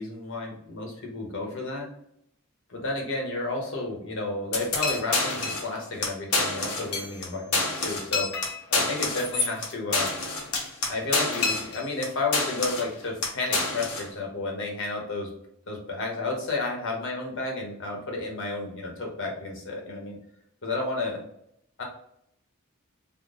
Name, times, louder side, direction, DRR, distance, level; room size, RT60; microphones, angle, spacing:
voice 1, 0.0-1.9 2.7-8.3 8.7-10.1 10.9-15.3 15.7-20.2 20.6-21.2 21.8-21.9, left 2 dB, 65° left, 0 dB, 1.1 m, -32 dB
sound 1, 4.5-5.7 6.0-6.1 6.3-7.3 7.5-12.1 12.3-12.9 13.2-14.1, left 3 dB, 90° left, 1.0 m, -27 dB
3.7 x 2.2 x 3.8 m, 0.73 s
head